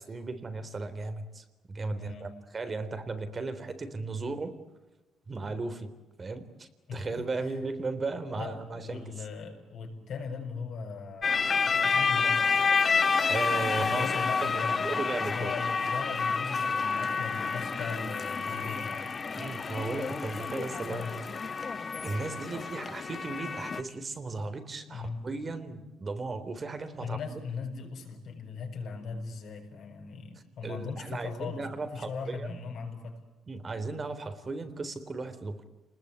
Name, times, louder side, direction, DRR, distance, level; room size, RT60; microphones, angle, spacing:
voice 1, 0.0-4.5 5.3-5.9 6.2-9.2 12.8-12.9 13.3-15.5 19.3-21.1 22.0-27.2 30.6-32.6 33.5-35.6, right 3 dB, 35° right, 11 dB, 3.6 m, -36 dB
voice 2, 1.9-2.3 6.9-7.6 8.3-11.3 11.8-12.4 13.8-19.1 20.9-21.2 24.9-25.2 27.0-33.2, left 5 dB, 65° left, 3 dB, 7.6 m, -39 dB
sound 1, 11.2-23.8, left 5 dB, 40° left, 1.3 m, -29 dB
29.5 x 21.0 x 9.7 m, 1.1 s
cardioid pair, 90°, 0 cm